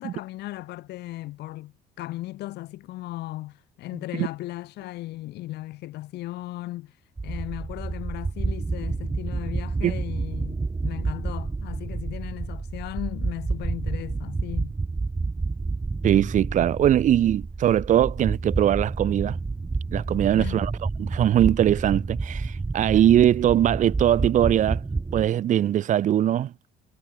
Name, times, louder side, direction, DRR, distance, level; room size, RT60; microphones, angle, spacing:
voice 1, 0.0-6.9 7.2-14.7 20.3-20.6, left 17 dB, 80° left, 1.9 m, -36 dB
sound 1, 7.2-25.3, right 3 dB, 15° right, 1.2 m, -29 dB
voice 2, 16.0-19.4 19.9-20.7 21.0-24.8 25.1-26.5, right 11 dB, 50° right, 0.5 m, -21 dB
cardioid pair, 110°, 17 cm